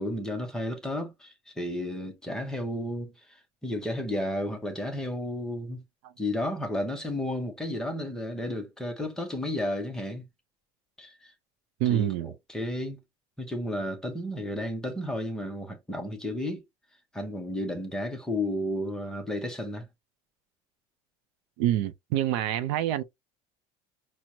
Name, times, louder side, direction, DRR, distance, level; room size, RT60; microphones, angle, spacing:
voice 1, 0.0-5.8 6.2-10.2 11.0-11.3 11.9-12.1 12.5-13.0 13.4-16.6 17.1-19.9, left 1 dB, 5° left, 0.6 m, -32 dB
voice 2, 11.8-12.3 21.6-23.0, right 12 dB, 60° right, 0.5 m, -26 dB
6.0 x 2.0 x 2.6 m
cardioid pair, 180°, 15 cm